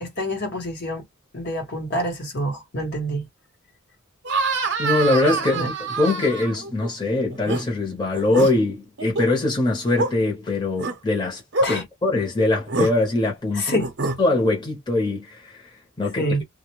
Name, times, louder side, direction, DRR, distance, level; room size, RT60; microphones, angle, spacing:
voice 1, 0.0-1.0 1.3-3.3 5.5-5.7 11.6-11.8 13.5-13.9 16.2-16.4, equal, 55° left, 1.1 m, -27 dB
sound 1, 4.2-6.9 7.3-7.6 8.1-8.5 9.0-9.3 10.0-10.1 10.8-10.9 11.5-11.7 12.7-12.9 13.8-14.2, right 3 dB, 55° right, 0.8 m, -25 dB
voice 2, 4.8-11.4 11.7-13.8 14.2-15.6 16.0-16.3, left 2 dB, 20° left, 0.9 m, -22 dB
2.3 x 2.1 x 2.9 m
head